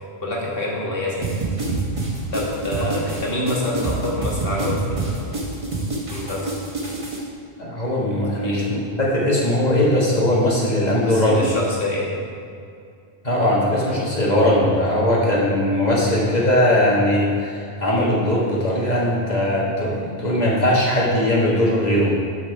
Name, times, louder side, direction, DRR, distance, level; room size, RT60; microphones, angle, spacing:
voice 1, 0.2-1.3 2.3-5.3 6.1-6.5 8.4-8.7 11.0-12.2, left 1 dB, 60° left, -4 dB, 1.8 m, -26 dB
sound 1, 1.2-7.2, right 2 dB, 30° right, 1.4 m, -26 dB
voice 2, 7.6-11.4 13.2-22.2, left 1 dB, 40° left, -5 dB, 1.6 m, -19 dB
7.3 x 6.0 x 4.6 m, 2.4 s
omnidirectional pair, 1.1 m